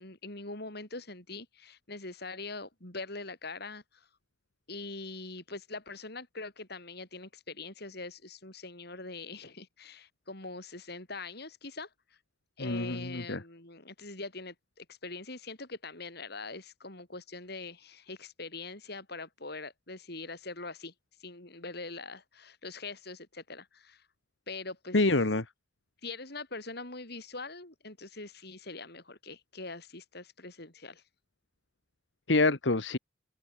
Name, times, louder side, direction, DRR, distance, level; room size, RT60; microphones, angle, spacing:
voice 1, 0.0-4.1 4.7-11.9 12.6-20.9 21.2-24.0 24.5-25.0 26.0-31.0, left 3 dB, 60° left, 6.6 m, -43 dB
voice 2, 12.6-13.4 24.9-25.4 32.3-33.0, left 2 dB, 80° left, 1.7 m, -26 dB
open air
head